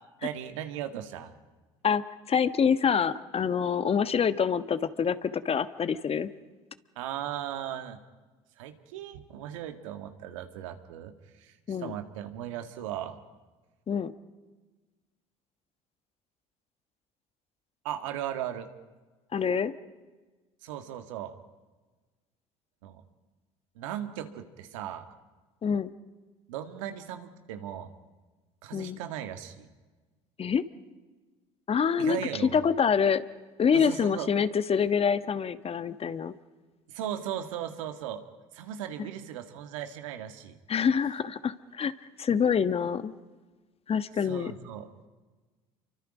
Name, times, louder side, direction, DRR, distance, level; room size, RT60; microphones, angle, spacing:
voice 1, 0.2-1.3 7.0-8.0 8.6-13.2 17.8-18.7 20.6-21.4 22.8-23.0 23.8-25.1 26.5-27.9 28.6-29.7 32.0-32.6 33.7-34.3 36.9-38.2 38.5-40.6 44.2-44.9, right 10 dB, 85° right, 7 dB, 2.0 m, -37 dB
voice 2, 1.8-6.3 11.7-11.9 13.9-14.1 19.3-19.7 25.6-25.9 28.7-29.0 30.4-30.6 31.7-32.2 32.5-33.2 33.6-36.3 40.7-41.9 42.2-43.1 43.9-44.5, left 7 dB, 40° left, 12 dB, 1.4 m, -26 dB
29.0 x 24.5 x 5.1 m, 1.3 s
hypercardioid pair, 70°, 16 cm